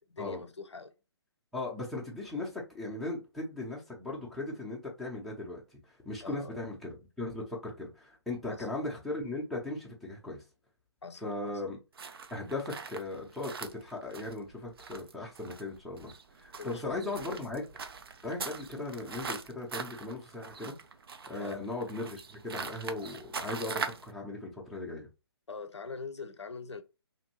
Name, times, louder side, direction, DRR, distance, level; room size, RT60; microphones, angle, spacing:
voice 1, 0.1-0.9 6.2-6.6 8.5-8.7 11.0-11.6 16.6-17.2 21.4-21.6 25.5-26.8, left 4 dB, 85° left, 0.5 m, -43 dB
voice 2, 1.5-10.4 11.2-11.8 12.3-17.6 18.2-20.7 21.3-25.1, left 2 dB, ahead, 0.5 m, -38 dB
sound 1, 12.0-24.1, right 5 dB, 60° right, 0.5 m, -42 dB
2.6 x 2.5 x 2.9 m
figure-of-eight pair, 140°, 14 cm